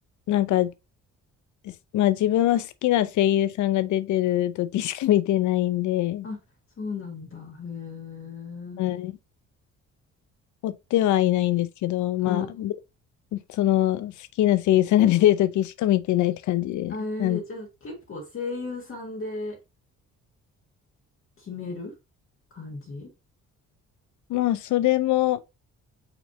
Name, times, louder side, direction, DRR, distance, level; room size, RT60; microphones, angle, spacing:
voice 1, 0.3-0.7 1.6-6.3 8.8-9.1 10.6-12.7 13.3-16.9 17.2-17.4 24.3-25.4, left 13 dB, 75° left, 0.6 m, -23 dB
voice 2, 6.8-8.8 12.2-12.5 16.9-19.6 21.4-21.9 22.5-23.1, left 3 dB, 45° left, 1.7 m, -35 dB
5.9 x 3.2 x 2.8 m
cardioid pair, 90°, 30 cm